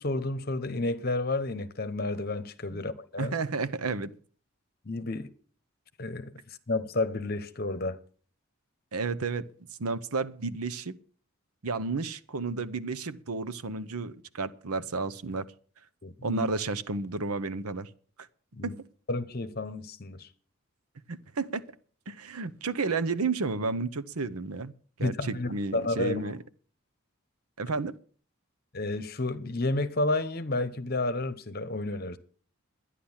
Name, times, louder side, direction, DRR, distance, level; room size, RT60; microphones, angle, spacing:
voice 1, 0.0-3.3 4.8-5.3 6.0-6.3 6.7-8.0 16.0-16.5 18.5-18.7 19.1-20.3 25.0-26.3 28.7-32.2, left 2 dB, 45° left, 0.9 m, -31 dB
voice 2, 3.2-4.1 8.9-9.5 9.8-10.9 11.6-15.4 16.2-17.9 18.6-18.7 21.1-21.6 22.1-24.7 25.0-26.4 27.6-27.9, right 4 dB, 90° right, 0.9 m, -32 dB
11.5 x 10.0 x 7.2 m
head